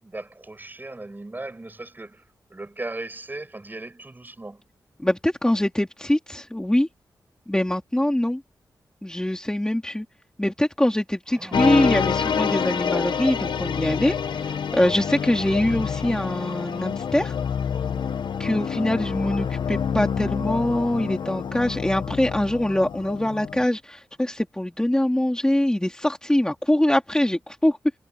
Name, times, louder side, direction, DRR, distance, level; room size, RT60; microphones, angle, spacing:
voice 1, 0.0-2.2 2.5-4.6 11.3-11.7 13.4-13.6 13.9-14.0, right 2 dB, 25° right, 7.1 m, -37 dB
voice 2, 5.0-6.9 7.5-8.4 9.0-10.0 10.4-17.3 18.4-27.8, left 1 dB, 10° left, 2.6 m, -23 dB
sound 1, 11.5-23.7, left 7 dB, 80° left, 1.2 m, -27 dB
cardioid pair, 80°, 8 cm